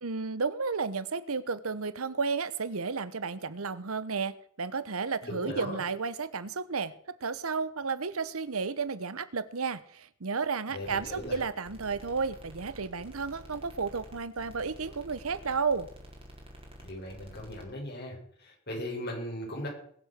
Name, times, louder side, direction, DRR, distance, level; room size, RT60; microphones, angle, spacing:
voice 1, 0.0-6.9 7.2-15.9, right 5 dB, 85° right, 16 dB, 1.0 m, -32 dB
voice 2, 5.2-5.8 10.7-11.4 16.8-19.7, left 1 dB, 50° left, -2 dB, 7.2 m, -38 dB
sound 1, 10.8-17.6, equal, 30° right, 4.0 m, -49 dB
21.5 x 7.8 x 6.7 m, 0.62 s
head